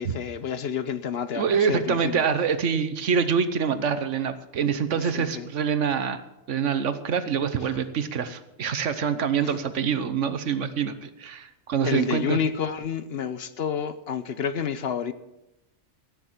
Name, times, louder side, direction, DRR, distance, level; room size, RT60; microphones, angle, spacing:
voice 1, 0.0-2.2 3.7-3.8 5.0-5.5 9.4-9.5 11.8-15.1, left 7 dB, 60° left, 0.9 m, -29 dB
voice 2, 1.3-6.2 6.5-12.4, right 7 dB, 70° right, 1.3 m, -25 dB
17.0 x 7.2 x 7.3 m
omnidirectional pair, 1.3 m